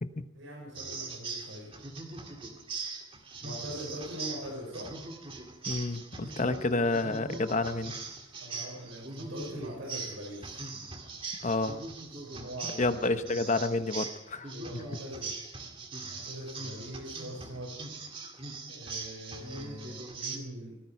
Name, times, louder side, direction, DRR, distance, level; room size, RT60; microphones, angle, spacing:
voice 1, 0.4-1.7 3.4-4.9 8.4-10.6 12.2-13.0 14.5-15.3 16.1-17.8 18.7-20.8, equal, 85° right, -2 dB, 5.3 m, -42 dB
sound 1, 0.7-20.4, right 3 dB, 30° right, 2.2 m, -41 dB
voice 2, 5.7-8.0 11.4-11.8 12.8-14.8, left 2 dB, 40° left, 10 dB, 1.0 m, -29 dB
17.5 x 14.0 x 5.7 m, 0.89 s
head